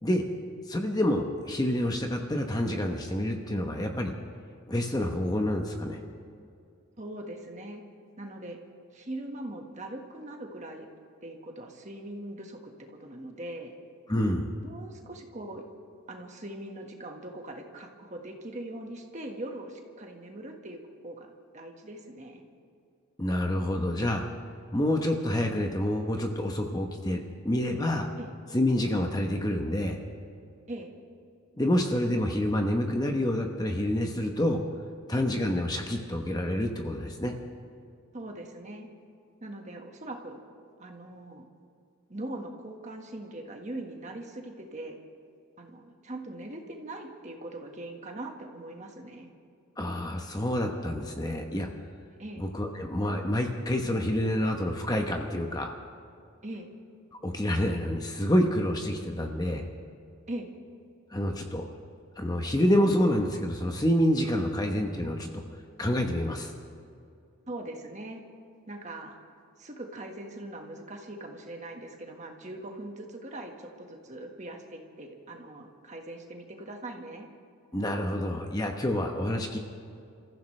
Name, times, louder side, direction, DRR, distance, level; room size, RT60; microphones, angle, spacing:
voice 1, 0.7-4.1 4.7-6.0 14.1-14.5 23.2-24.3 24.7-28.1 28.5-30.0 31.6-34.6 35.1-37.3 49.8-51.7 52.4-55.7 57.2-59.6 61.1-61.7 62.2-65.4 65.8-66.5 77.7-79.6, left 1 dB, 15° left, 3 dB, 0.9 m, -28 dB
voice 2, 7.0-7.8 8.2-8.6 8.9-10.9 11.2-13.7 14.6-15.7 16.1-22.4 28.2-28.3 30.7-30.9 38.1-38.9 39.4-40.4 40.8-41.4 42.1-45.0 45.6-49.3 52.2-52.5 56.4-56.7 60.3-60.5 67.5-68.2 68.7-69.2 69.6-77.3, right 1 dB, 30° right, 2 dB, 1.6 m, -41 dB
29.0 x 15.0 x 3.3 m, 2.4 s
head